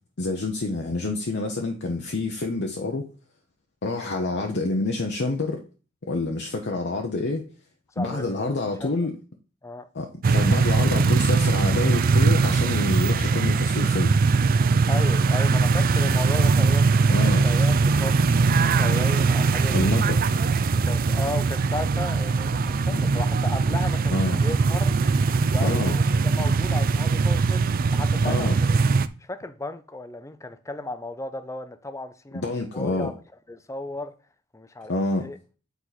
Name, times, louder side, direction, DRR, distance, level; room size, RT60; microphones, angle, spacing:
voice 1, 0.2-3.1 3.8-5.6 6.0-7.4 8.0-9.1 9.9-14.2 17.1-17.4 19.7-20.4 22.8-23.1 24.1-24.4 25.6-25.9 28.2-28.6 32.3-33.1 34.9-35.3, left 2 dB, 55° left, 0.8 m, -27 dB
voice 2, 8.0-8.5 8.8-8.9 9.6-9.9 14.9-20.2 20.8-24.9 25.5-28.8 29.2-33.1 33.5-34.1 34.5-35.4, left 2 dB, 15° left, 0.6 m, -35 dB
sound 1, 10.2-29.1, right 4 dB, 45° right, 0.4 m, -21 dB
8.2 x 4.7 x 4.1 m
head